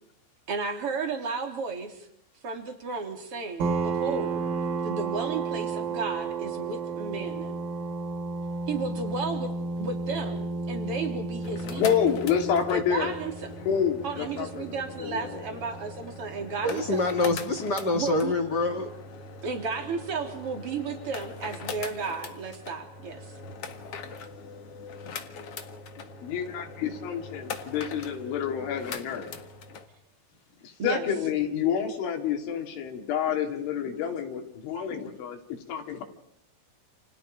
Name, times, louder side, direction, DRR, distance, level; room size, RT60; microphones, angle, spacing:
voice 1, 0.5-2.1 2.4-4.5 4.8-7.5 8.7-9.5 9.8-11.8 12.7-13.3 14.0-17.1 17.9-18.3 19.4-23.4 30.8-31.0, right 4 dB, 35° right, 4 dB, 3.7 m, -33 dB
sound 1, 3.6-16.9, right 4 dB, 60° right, 3.4 m, -33 dB
sound 2, 11.3-29.9, left 4 dB, 60° left, 1.6 m, -42 dB
voice 2, 11.6-13.1 13.6-15.6 26.2-29.4 30.6-36.0, left 8 dB, 80° left, 3 dB, 5.1 m, -29 dB
voice 3, 16.6-18.9, left 2 dB, 35° left, 5 dB, 1.8 m, -26 dB
30.0 x 29.0 x 5.3 m, 0.69 s
omnidirectional pair, 5.4 m